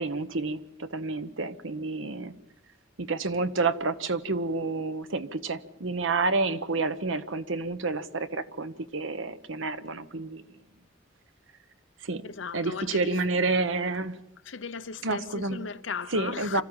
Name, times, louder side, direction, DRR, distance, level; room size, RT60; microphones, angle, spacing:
voice 1, 0.0-2.3 3.0-10.4 12.0-12.2 12.5-14.2 15.0-15.6 16.1-16.6, right 3 dB, 75° right, 1.1 m, -29 dB
voice 2, 12.2-13.2 14.5-16.6, left 5 dB, 70° left, 0.8 m, -37 dB
25.5 x 14.5 x 8.9 m
head